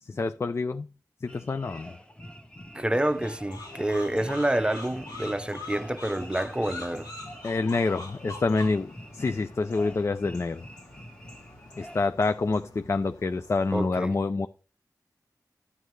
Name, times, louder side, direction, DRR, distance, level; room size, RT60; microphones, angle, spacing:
voice 1, 0.0-0.9 1.2-2.0 7.4-10.7 11.8-14.5, left 3 dB, 40° left, 0.4 m, -27 dB
sound 1, 1.3-12.0, equal, 15° left, 1.3 m, -46 dB
voice 2, 2.7-7.1 13.7-14.2, right 1 dB, 15° right, 0.6 m, -28 dB
sound 2, 3.1-13.9, left 2 dB, 80° left, 2.1 m, -44 dB
11.0 x 8.3 x 3.2 m
wide cardioid pair, 60°, 7 cm